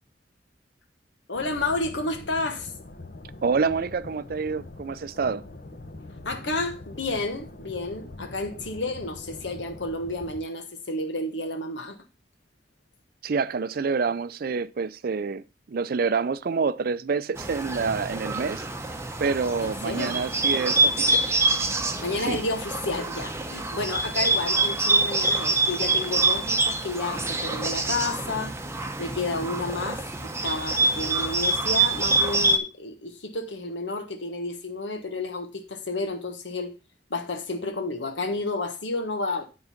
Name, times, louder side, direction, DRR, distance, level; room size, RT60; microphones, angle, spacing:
voice 1, 1.3-2.7 6.2-12.0 19.6-20.2 22.0-28.5 29.0-36.7 37.1-39.4, left 2 dB, 80° left, 1.3 m, -31 dB
sound 1, 1.3-10.4, left 2 dB, 55° left, 1.0 m, -43 dB
voice 2, 3.4-5.4 13.2-15.4 15.7-18.7 19.2-21.2 22.3-22.4, right 5 dB, 55° right, 0.4 m, -27 dB
Bird, 17.4-32.6, right 2 dB, 15° right, 0.7 m, -26 dB
9.6 x 3.9 x 5.7 m
head